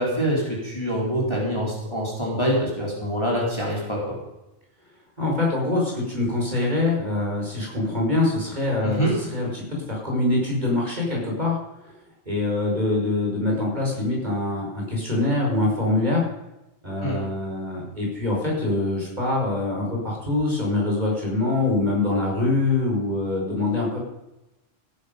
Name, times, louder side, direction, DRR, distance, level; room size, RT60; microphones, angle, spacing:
voice 1, 0.0-4.2 8.8-9.1 17.0-17.2, equal, 20° left, -4 dB, 4.1 m, -25 dB
voice 2, 5.2-11.6 12.3-16.2 16.8-24.0, left 2 dB, 35° right, -2 dB, 5.2 m, -24 dB
17.0 x 10.5 x 5.3 m, 0.95 s
omnidirectional pair, 1.3 m